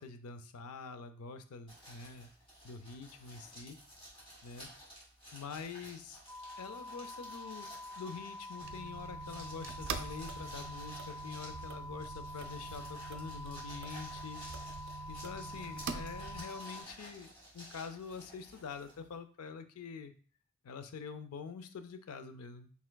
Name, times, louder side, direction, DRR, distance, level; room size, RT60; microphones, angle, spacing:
voice 1, 0.0-2.3 2.6-3.8 4.4-4.7 5.3-6.2 6.6-7.7 8.0-14.4 15.1-17.3 17.5-20.1 20.6-22.7, left 5 dB, 90° left, 9 dB, 0.4 m, -46 dB
sound 1, 1.7-19.2, equal, 25° left, 1.7 m, -53 dB
sound 2, 6.3-16.8, left 2 dB, 5° left, 0.5 m, -47 dB
sound 3, 8.6-16.4, right 6 dB, 55° right, 0.3 m, -45 dB
4.4 x 3.5 x 2.2 m, 0.43 s
head